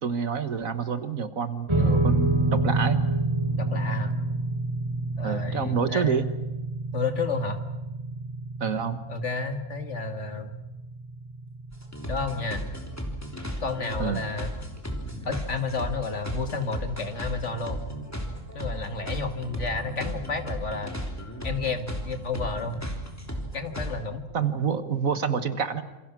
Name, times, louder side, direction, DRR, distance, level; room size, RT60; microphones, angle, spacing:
voice 1, 0.0-3.0 5.2-6.3 8.6-9.0 14.0-14.2 24.3-25.8, right 6 dB, 65° right, 10 dB, 1.8 m, -28 dB
sound 1, 1.7-14.2, right 2 dB, 20° right, 4.1 m, -29 dB
voice 2, 3.6-4.1 5.2-6.3 6.9-7.6 9.1-10.5 12.1-12.7 13.6-14.5 15.2-17.8 18.5-20.9 21.4-22.8 23.5-24.3, left 4 dB, 50° left, 7 dB, 2.2 m, -31 dB
sound 2, 11.7-23.9, equal, 10° left, 3.4 m, -35 dB
28.0 x 27.0 x 6.1 m, 1.1 s
omnidirectional pair, 1.6 m